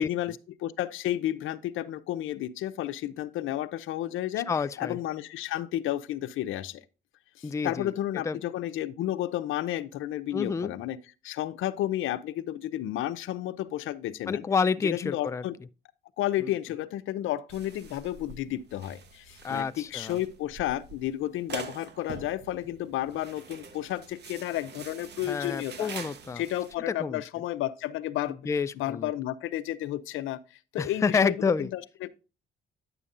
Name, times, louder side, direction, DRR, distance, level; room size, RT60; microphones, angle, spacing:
voice 1, 0.0-4.5 4.8-6.8 7.4-11.0 11.2-14.4 14.8-15.5 16.2-25.9 26.4-28.4 28.8-30.4 30.7-32.1, left 13 dB, 85° left, 0.6 m, -32 dB
voice 2, 4.5-5.0 7.4-7.9 8.2-8.4 10.3-10.7 14.3-15.4 16.4-16.5 19.4-20.2 25.3-26.4 26.9-27.2 28.5-29.1 30.8-31.7, left 5 dB, 15° left, 0.3 m, -28 dB
sound 1, 17.5-26.7, right 5 dB, 60° right, 1.0 m, -45 dB
9.7 x 6.9 x 2.5 m
cardioid pair, 90°, 20 cm